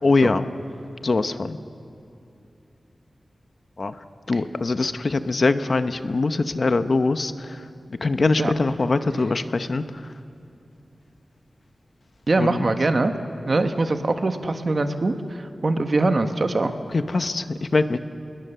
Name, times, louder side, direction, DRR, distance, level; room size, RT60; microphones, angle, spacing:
voice 1, 0.0-0.5 1.0-1.6 3.8-3.9 4.3-7.6 8.0-10.1 12.4-12.7 16.9-18.0, left 3 dB, 55° left, 10 dB, 0.9 m, -22 dB
voice 2, 12.3-13.1 13.5-16.7, right 2 dB, 50° right, 7 dB, 1.3 m, -22 dB
27.5 x 21.0 x 6.9 m, 2.7 s
wide cardioid pair, 100°, 0 cm